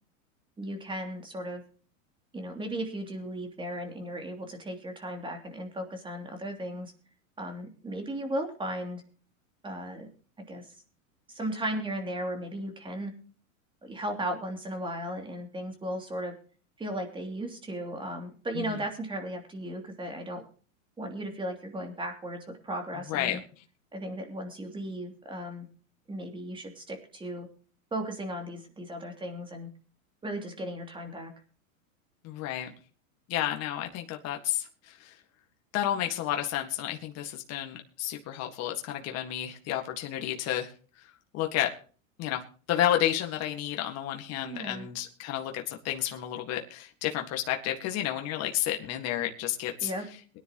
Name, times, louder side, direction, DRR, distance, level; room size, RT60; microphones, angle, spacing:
voice 1, 0.6-1.6 2.3-6.9 7.4-9.0 9.6-10.1 10.5-10.6 11.3-13.1 13.8-16.3 16.8-20.4 21.0-23.4 23.9-25.7 26.1-27.5 27.9-29.7 30.2-31.3 44.5-44.9 49.8-50.0, right 1 dB, 10° right, 4 dB, 3.0 m, -36 dB
voice 2, 23.1-23.4 32.2-32.7 33.3-35.1 35.7-40.7 41.0-41.7 42.2-42.4 42.7-49.9, left 12 dB, 40° left, 3 dB, 1.9 m, -31 dB
22.5 x 10.5 x 3.1 m, 0.40 s
supercardioid pair, 135°, 41 cm